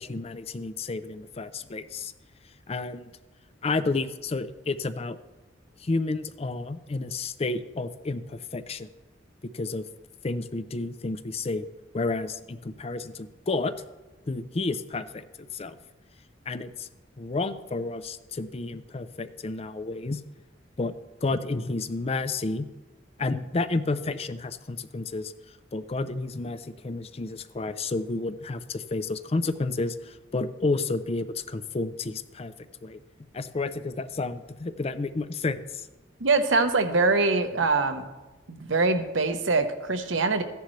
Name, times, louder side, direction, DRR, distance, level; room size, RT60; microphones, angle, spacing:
voice 1, 0.0-2.1 2.7-3.1 3.6-5.2 5.8-8.9 9.5-9.8 10.2-11.7 11.9-13.7 14.3-15.8 16.5-16.9 17.2-20.2 20.8-20.9 21.2-22.7 23.2-25.3 25.7-32.5 32.8-33.0 33.3-35.9, left 3 dB, 30° left, 12 dB, 0.5 m, -31 dB
voice 2, 36.2-38.0 38.5-40.4, right 3 dB, 75° right, 8 dB, 1.0 m, -23 dB
14.5 x 10.5 x 3.2 m, 1.1 s
head